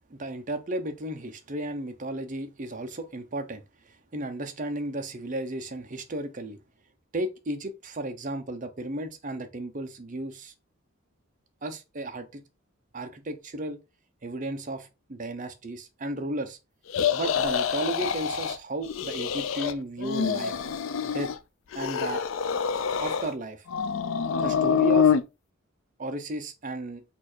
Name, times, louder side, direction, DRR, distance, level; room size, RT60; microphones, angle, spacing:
voice 1, 0.1-3.6 4.1-6.6 7.1-10.5 11.6-12.4 12.9-13.8 14.2-16.6 17.1-20.6 21.1-21.3 21.7-22.2 23.0-23.6 24.4-25.1 26.0-27.0, right 1 dB, 40° right, 0.7 m, -34 dB
sound 1, 16.9-18.6 18.9-19.7 20.0-21.4 21.7-23.3 23.7-25.2, left 6 dB, 65° left, 0.4 m, -26 dB
4.3 x 2.6 x 4.3 m
head